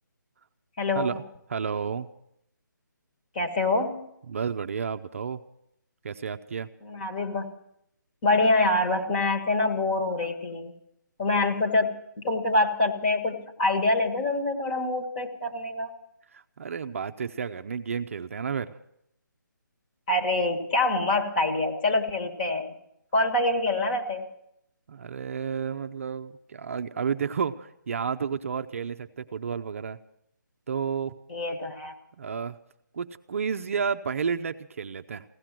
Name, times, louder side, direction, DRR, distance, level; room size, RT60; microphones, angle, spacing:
voice 1, 0.8-1.1 3.3-4.0 6.8-7.5 8.2-10.7 11.2-15.9 20.1-22.7 23.1-24.2 31.3-31.9, left 2 dB, 25° left, 3 dB, 1.6 m, -25 dB
voice 2, 1.5-2.1 4.3-5.4 6.0-6.7 16.3-18.8 24.9-30.0 30.7-31.1 32.2-32.6 32.9-35.2, right 6 dB, 40° right, 9 dB, 0.5 m, -31 dB
16.0 x 11.5 x 7.5 m, 0.78 s
hypercardioid pair, 165°, 11 cm